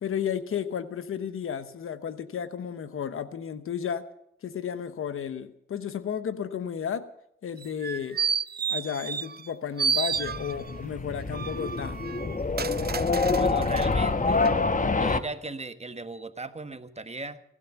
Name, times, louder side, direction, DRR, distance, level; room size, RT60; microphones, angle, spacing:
voice 1, 0.0-4.0 4.4-7.1 7.4-8.2 8.7-12.1, left 8 dB, 85° left, 12 dB, 1.0 m, -33 dB
sound 1, 7.6-9.5 9.8-10.8 11.3-13.9 14.4-14.5, right 6 dB, 50° right, 0.6 m, -31 dB
sound 2, 10.1-15.2, left 3 dB, 40° left, 1.1 m, -26 dB
voice 2, 13.4-14.4 14.9-17.4, right 3 dB, 30° right, 10 dB, 1.4 m, -37 dB
16.5 x 12.5 x 7.0 m, 0.77 s
cardioid pair, 40°, 21 cm